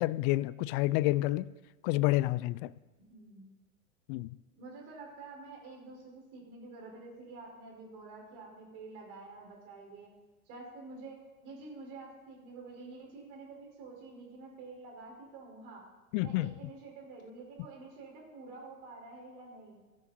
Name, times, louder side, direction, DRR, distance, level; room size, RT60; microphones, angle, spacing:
voice 1, 0.0-1.5 1.8-2.7 4.1-4.3 16.1-16.5, left 18 dB, 40° left, 0.5 m, -29 dB
voice 2, 3.1-3.5 4.5-10.1 10.5-15.8 16.2-19.8, right 3 dB, 50° right, 5.5 m, -48 dB
16.5 x 11.5 x 4.4 m
figure-of-eight pair, 85°, 42 cm